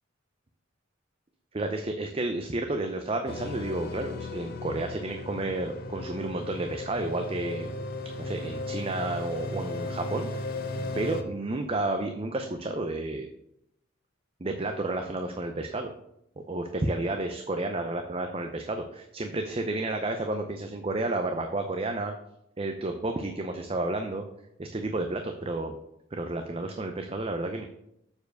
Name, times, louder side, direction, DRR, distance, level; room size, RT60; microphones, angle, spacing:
voice 1, 1.5-7.8 8.2-10.4 10.9-13.3 14.4-15.9 16.4-22.1 22.6-24.2 24.6-25.8 26.1-27.7, right 2 dB, 30° right, 5 dB, 0.5 m, -31 dB
sound 1, 3.3-11.2, left 2 dB, 50° left, 0.7 m, -35 dB
7.0 x 4.7 x 6.4 m, 0.79 s
head